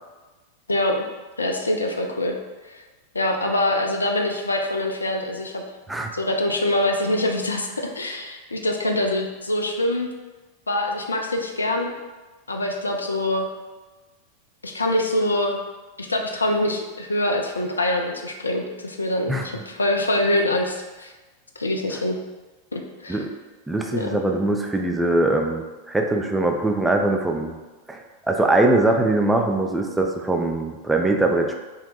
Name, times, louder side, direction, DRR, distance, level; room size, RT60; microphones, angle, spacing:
voice 1, 0.7-1.1 1.4-2.4 2.6-2.8 3.1-5.6 6.1-10.1 10.7-11.9 12.5-13.5 14.6-15.6 16.0-21.1 21.6-22.2 22.7-23.2 23.9-24.2, left 1 dB, 75° left, 2 dB, 0.3 m, -24 dB
voice 2, 23.7-27.5 27.9-31.6, right 2 dB, 5° right, 2 dB, 0.3 m, -22 dB
2.7 x 2.1 x 3.8 m, 1.2 s
figure-of-eight pair, 90°, 0 cm